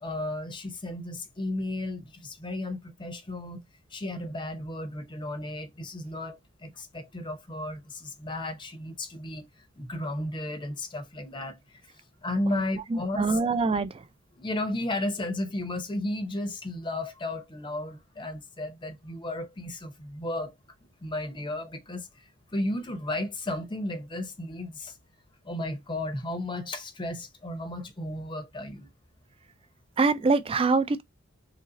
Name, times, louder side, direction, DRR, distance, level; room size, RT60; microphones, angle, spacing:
voice 1, 0.0-3.6 3.9-9.5 9.8-11.8 12.2-13.4 14.4-20.5 21.0-22.2 22.5-25.0 25.4-28.9, left 1 dB, 20° left, 0.6 m, -34 dB
voice 2, 12.9-14.0 30.0-31.0, right 4 dB, 25° right, 0.3 m, -24 dB
3.1 x 2.5 x 3.9 m
head